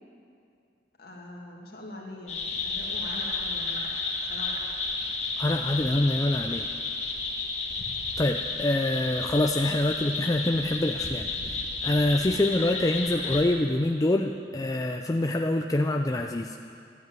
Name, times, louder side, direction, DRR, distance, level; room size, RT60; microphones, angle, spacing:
voice 1, 1.0-3.9 4.3-4.6, left 1 dB, 60° left, -1 dB, 2.4 m, -43 dB
sound 1, 2.3-13.4, left 3 dB, 40° left, 1.7 m, -32 dB
voice 2, 5.4-6.7 8.2-16.6, left 1 dB, 20° left, 4 dB, 0.4 m, -26 dB
12.5 x 10.5 x 8.9 m, 2.4 s
head